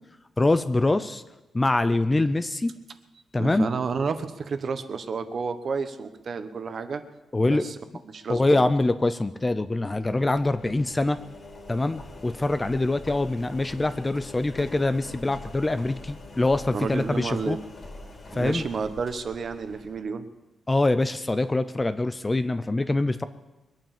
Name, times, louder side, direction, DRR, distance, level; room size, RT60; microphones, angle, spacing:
voice 1, 0.4-1.2 1.5-2.7 3.3-3.7 7.3-7.7 8.3-11.2 11.7-17.6 18.3-18.6 20.7-23.2, left 2 dB, 15° left, 12 dB, 0.5 m, -24 dB
voice 2, 3.4-7.0 7.4-7.8 8.1-8.7 16.7-17.6 18.3-20.3, right 5 dB, 45° right, 10 dB, 1.1 m, -31 dB
Engine, 9.9-19.9, left 2 dB, 40° left, 3.1 m, -44 dB
22.5 x 8.9 x 7.2 m, 1.1 s
wide cardioid pair, 155°, 0 cm